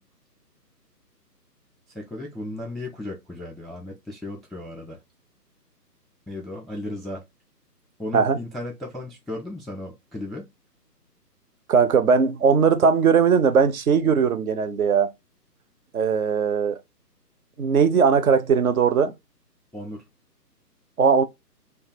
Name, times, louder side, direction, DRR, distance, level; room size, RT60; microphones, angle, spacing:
voice 1, 1.9-5.0 6.3-7.2 8.0-10.5 19.7-20.1, left 1 dB, ahead, 0.3 m, -35 dB
voice 2, 11.7-15.1 15.9-16.8 17.6-19.1 21.0-21.2, right 6 dB, 60° right, 0.5 m, -19 dB
2.3 x 2.2 x 3.9 m
hypercardioid pair, 155°, 49 cm